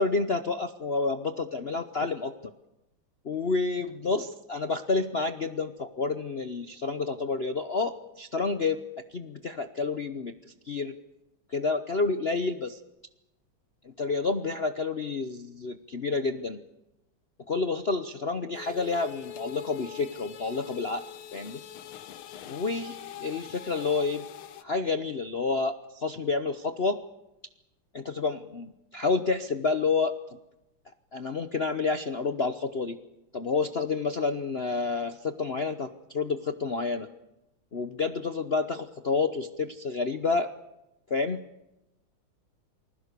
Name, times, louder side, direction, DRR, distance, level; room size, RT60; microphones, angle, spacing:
voice 1, 0.0-2.5 3.2-8.8 9.1-11.0 11.5-12.8 13.8-16.6 17.5-21.0 21.3-21.6 22.5-24.3 24.6-27.0 27.9-30.2 31.1-33.0 33.3-37.1 37.7-40.5 41.1-41.4, left 4 dB, 45° left, 9 dB, 0.8 m, -29 dB
sound 1, 18.5-24.6, left 11 dB, 85° left, 1.9 m, -43 dB
28.5 x 20.5 x 6.8 m, 0.92 s
omnidirectional pair, 2.3 m